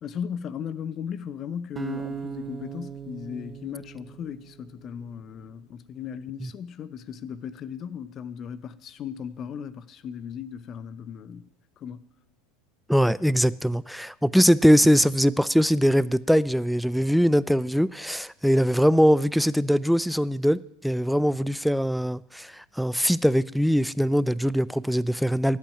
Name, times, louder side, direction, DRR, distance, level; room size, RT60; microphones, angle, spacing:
voice 1, 0.0-11.4 11.8-12.0, left 8 dB, 40° left, 0.7 m, -36 dB
sound 1, 1.8-4.9, right 6 dB, 20° right, 1.0 m, -38 dB
voice 2, 12.9-25.6, equal, ahead, 0.4 m, -22 dB
10.0 x 8.3 x 9.9 m
figure-of-eight pair, 80°, 0 cm